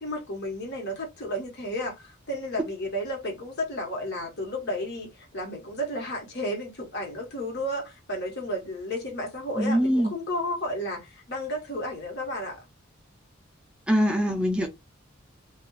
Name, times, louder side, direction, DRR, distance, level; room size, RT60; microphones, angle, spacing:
voice 1, 0.0-12.6, left 1 dB, 55° left, 1.2 m, -32 dB
voice 2, 9.6-10.1 13.9-14.7, equal, 5° right, 0.4 m, -23 dB
2.3 x 2.3 x 3.1 m
head